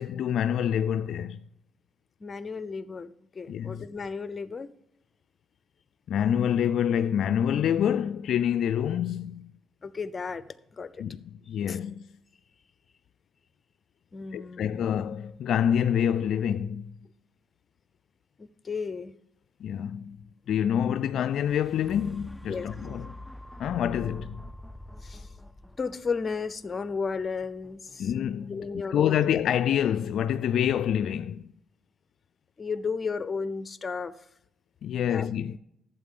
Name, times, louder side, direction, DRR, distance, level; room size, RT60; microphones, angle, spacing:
voice 1, 0.0-1.4 3.5-3.8 6.1-9.5 11.0-11.2 11.5-12.0 14.3-16.9 19.6-20.2 20.5-23.1 23.6-24.4 28.0-28.6 28.9-31.4 34.8-35.6, left 9 dB, 70° left, 0.3 m, -27 dB
voice 2, 2.2-4.7 9.8-10.5 10.7-11.0 11.7-11.8 14.1-14.9 18.4-19.1 22.5-22.7 25.0-25.3 25.8-28.1 28.5-29.2 32.6-34.2 35.1-35.3, left 5 dB, 35° left, 0.6 m, -34 dB
sound 1, 21.1-29.1 29.7-29.8, equal, ahead, 0.4 m, -46 dB
12.0 x 8.0 x 3.8 m
cardioid pair, 90°, 0 cm